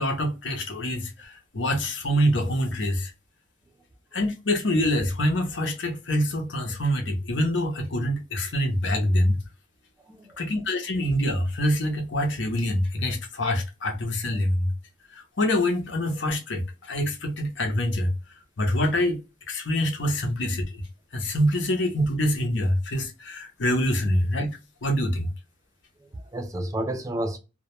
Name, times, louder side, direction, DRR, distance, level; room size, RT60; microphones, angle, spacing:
voice 1, 0.0-3.1 4.1-9.4 10.4-14.7 15.1-18.1 18.6-19.2 19.5-20.8 21.1-24.5 24.8-25.3, equal, 65° left, 0.7 m, -25 dB
voice 2, 10.1-10.4 26.0-27.4, right 1 dB, 15° right, 0.3 m, -31 dB
2.3 x 2.1 x 2.9 m
head